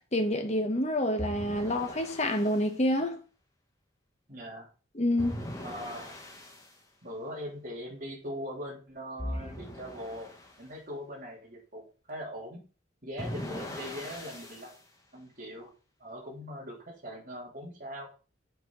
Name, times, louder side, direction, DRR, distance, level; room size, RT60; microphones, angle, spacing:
voice 1, 0.1-3.2 4.9-5.4, left 1 dB, 35° left, 1.2 m, -28 dB
sound 1, 1.2-2.6 5.2-6.7 9.2-10.6 13.2-14.7, left 1 dB, 15° left, 1.4 m, -40 dB
voice 2, 4.3-4.7 5.6-6.2 7.0-10.3 10.6-12.6 13.0-14.7 15.1-15.7 16.0-18.1, equal, 40° right, 3.5 m, -41 dB
8.0 x 5.5 x 4.1 m
head